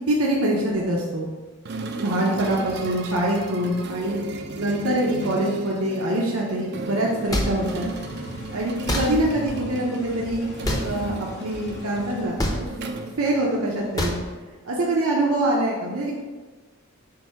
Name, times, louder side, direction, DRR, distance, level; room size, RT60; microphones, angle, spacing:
voice 1, 0.1-1.3 2.0-4.2 4.5-7.8 8.5-10.5 10.8-11.1 11.4-12.7 13.2-14.2 14.6-16.1, right 1 dB, 75° right, -3 dB, 0.8 m, -24 dB
sound 1, 1.7-13.9, right 3 dB, 45° right, 0.5 m, -35 dB
sound 2, 7.2-12.2, left 1 dB, 45° left, 0.7 m, -40 dB
sound 3, 7.3-7.5 8.9-9.0 10.6-10.8 12.4-12.6 14.0-14.2, left 1 dB, 15° left, 0.7 m, -23 dB
7.7 x 2.7 x 5.7 m, 1.3 s
head